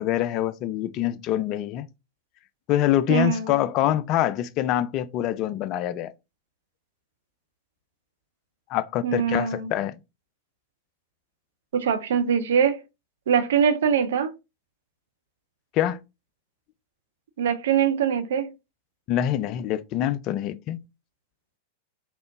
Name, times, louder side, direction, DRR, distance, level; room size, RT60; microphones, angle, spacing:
voice 1, 0.0-1.9 2.7-6.1 8.7-9.9 15.7-16.0 19.1-20.8, left 12 dB, 40° left, 0.3 m, -25 dB
voice 2, 3.1-3.5 9.0-9.7 11.7-12.8 13.3-14.3 17.4-18.5, right 7 dB, 60° right, 0.4 m, -23 dB
3.4 x 2.4 x 2.6 m
figure-of-eight pair, 90°, 0 cm